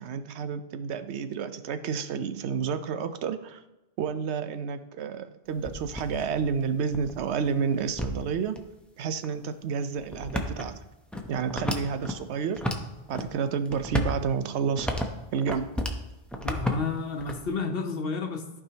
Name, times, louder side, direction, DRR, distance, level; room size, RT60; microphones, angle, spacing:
voice 1, 0.0-3.6 4.0-8.6 9.0-10.8 11.3-12.6 13.1-15.0 15.3-15.7, right 6 dB, 80° right, 10 dB, 0.9 m, -30 dB
sound 1, 5.5-8.6 9.2-9.3 10.0-12.1 12.5-13.3 13.6-16.0 16.3-17.5, equal, ahead, 0.6 m, -33 dB
voice 2, 16.4-18.6, left 4 dB, 60° left, 5 dB, 1.1 m, -31 dB
14.5 x 4.9 x 2.9 m, 1.0 s
omnidirectional pair, 1.1 m